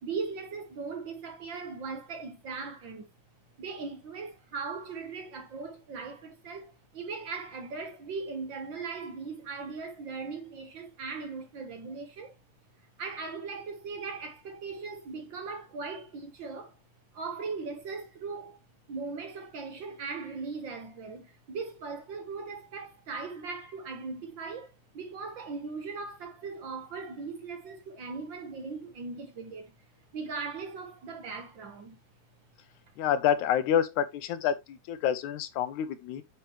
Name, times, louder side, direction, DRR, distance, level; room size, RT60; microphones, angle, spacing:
voice 1, 0.0-3.1 3.6-12.4 13.0-16.8 17.1-18.6 18.9-29.7 30.1-32.0, right 4 dB, 60° right, 1.3 m, -39 dB
voice 2, 33.0-36.2, left 9 dB, 75° left, 2.0 m, -28 dB
9.1 x 5.7 x 3.0 m
omnidirectional pair, 3.6 m